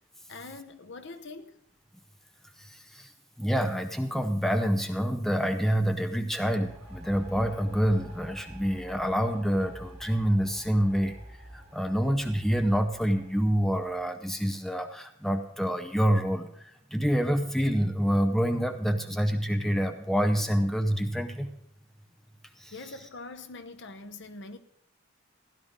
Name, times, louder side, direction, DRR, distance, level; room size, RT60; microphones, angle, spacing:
voice 1, 0.3-1.6 22.7-24.6, left 3 dB, 55° left, 0.8 m, -43 dB
voice 2, 2.7-3.1 3.4-11.2 11.5-21.5 22.6-22.7, equal, ahead, 0.6 m, -27 dB
sound 1, 6.3-14.0, equal, 30° right, 2.6 m, -48 dB
16.0 x 11.5 x 3.7 m
head